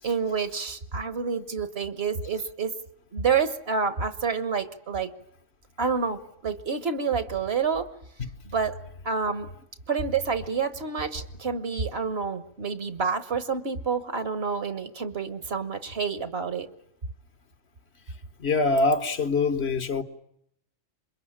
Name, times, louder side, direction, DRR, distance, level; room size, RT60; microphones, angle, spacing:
voice 1, 0.0-2.7 3.1-5.1 5.8-7.9 8.4-8.8 9.0-9.5 9.9-16.7, right 5 dB, 55° right, 1.5 m, -28 dB
voice 2, 18.4-20.0, left 3 dB, 60° left, 1.5 m, -24 dB
26.5 x 22.5 x 8.8 m
omnidirectional pair, 1.3 m